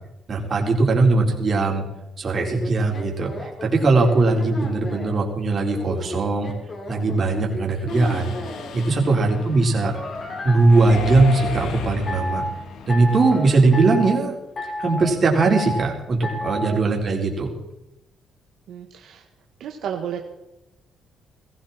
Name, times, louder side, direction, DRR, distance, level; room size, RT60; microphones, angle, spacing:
voice 1, 0.3-1.9 2.2-6.5 6.9-8.3 8.7-10.0 10.4-12.4 12.9-14.4 14.8-17.5, right 3 dB, 45° right, 0 dB, 4.3 m, -20 dB
sound 1, 2.2-5.2 5.7-8.7 9.9-11.6 12.1-12.5 12.9-13.4 13.7-14.2 14.6-15.1 15.4-15.9 16.2-16.8, left 1 dB, 40° left, 4.1 m, -31 dB
Mechanisms, 7.9-13.8, left 6 dB, 80° left, 2.0 m, -36 dB
voice 2, 18.7-19.2 19.6-20.2, right 8 dB, 75° right, 2 dB, 1.6 m, -32 dB
19.5 x 15.0 x 4.4 m, 0.92 s
cardioid pair, 90°, 0 cm